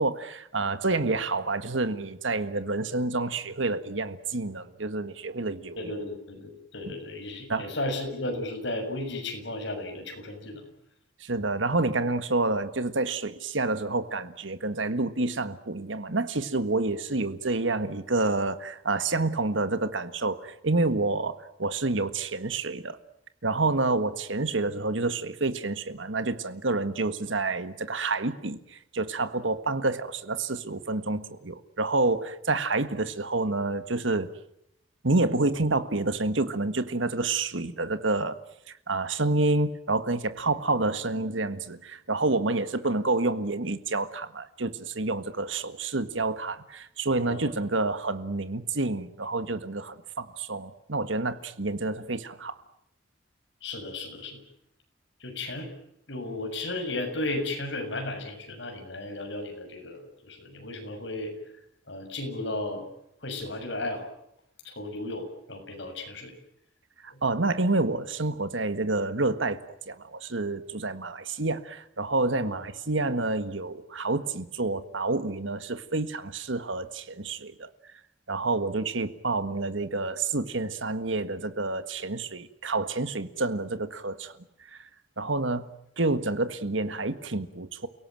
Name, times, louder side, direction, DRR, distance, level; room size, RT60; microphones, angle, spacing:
voice 1, 0.0-5.9 6.9-7.0 7.5-7.7 11.2-23.0 23.4-34.3 35.0-38.4 38.9-52.6 67.0-77.7 78.3-84.3 84.7-84.8 85.2-85.7 86.0-87.9, right 3 dB, 75° right, 11 dB, 1.7 m, -28 dB
voice 2, 5.8-10.7 47.2-47.5 53.6-54.4 55.2-55.7 56.1-61.3 61.9-62.9 63.2-64.1 64.6-66.3 72.4-72.6, left 2 dB, 65° left, 4 dB, 7.0 m, -34 dB
30.0 x 17.5 x 9.1 m, 0.77 s
head